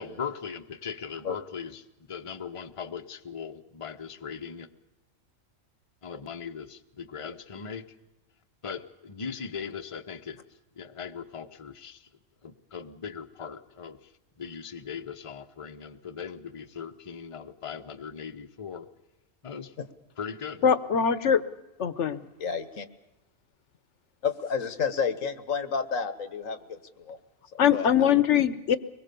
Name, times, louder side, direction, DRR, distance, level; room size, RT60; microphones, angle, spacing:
voice 1, 0.0-4.7 6.0-8.0 8.6-10.4 10.7-12.1 12.4-14.1 14.4-18.9 19.4-19.7 20.2-20.6, left 6 dB, 25° left, 6 dB, 0.9 m, -39 dB
voice 2, 20.6-21.4 21.8-22.2 27.6-28.8, left 8 dB, 65° left, 14 dB, 1.3 m, -22 dB
voice 3, 22.4-22.9 24.2-27.2 27.5-28.1, left 6 dB, 90° left, 11 dB, 1.7 m, -31 dB
24.0 x 21.5 x 6.9 m, 0.98 s
omnidirectional pair, 1.3 m